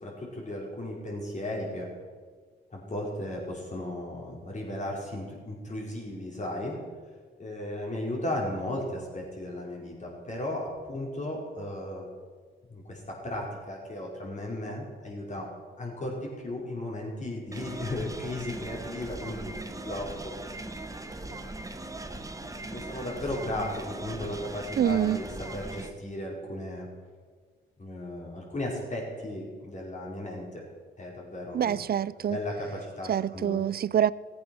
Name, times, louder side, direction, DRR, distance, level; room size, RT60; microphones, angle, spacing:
voice 1, 0.0-1.9 2.7-6.7 7.4-12.1 12.7-15.5 15.8-20.3 21.0-21.5 22.7-26.9 27.8-30.6 31.0-31.7 32.2-33.6, left 1 dB, 35° left, 4.9 m, -35 dB
sound 1, 17.5-25.9, right 2 dB, 15° right, 1.2 m, -40 dB
voice 2, 24.8-25.2 31.5-32.4 33.1-34.1, right 10 dB, 50° right, 0.4 m, -26 dB
16.0 x 8.4 x 6.2 m
cardioid pair, 65°, 20 cm